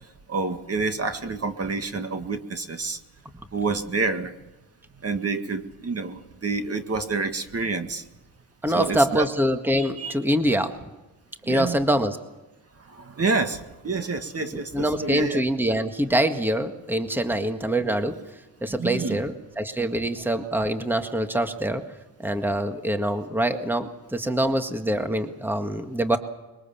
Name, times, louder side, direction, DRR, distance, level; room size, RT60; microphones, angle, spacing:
voice 1, 0.3-3.0 3.5-4.3 5.0-8.0 8.7-9.3 9.7-10.1 11.5-11.8 12.9-15.4 18.7-19.2, right 4 dB, 35° right, 7 dB, 1.9 m, -28 dB
voice 2, 8.6-10.7 11.5-12.2 14.7-18.1 18.6-21.8 22.2-26.2, right 1 dB, 5° right, 7 dB, 1.8 m, -24 dB
22.0 x 22.0 x 7.2 m, 1.1 s
cardioid pair, 85°, 43 cm